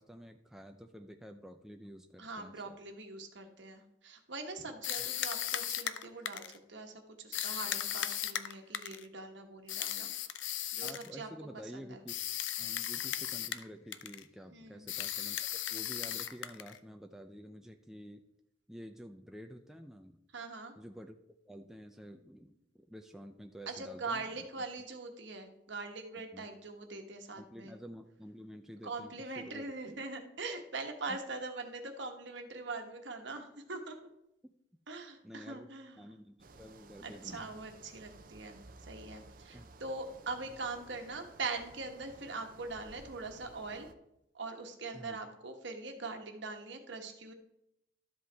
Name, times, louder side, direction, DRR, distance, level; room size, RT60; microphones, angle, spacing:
voice 1, 0.0-2.8 10.8-12.2 12.6-15.4 15.7-18.2 18.7-20.2 20.8-21.2 21.5-24.5 26.2-26.5 27.4-30.0 31.1-31.2 35.2-35.7 36.0-37.6 39.5-39.7 44.9-45.2, equal, ahead, 4 dB, 0.4 m, -50 dB
voice 2, 2.2-10.1 10.7-12.0 14.5-14.9 20.3-20.7 23.7-27.7 28.8-34.0 34.9-36.0 37.0-38.6 38.9-43.9 44.3-47.3, right 3 dB, 65° right, 4 dB, 1.3 m, -42 dB
sound 1, 4.8-6.6 7.3-9.0 9.7-11.1 12.1-13.7 13.9-14.2 14.9-16.8, left 11 dB, 70° left, 0.6 m, -36 dB
sound 2, 36.4-43.9, right 3 dB, 45° right, 0.6 m, -56 dB
12.5 x 7.8 x 3.4 m, 0.84 s
head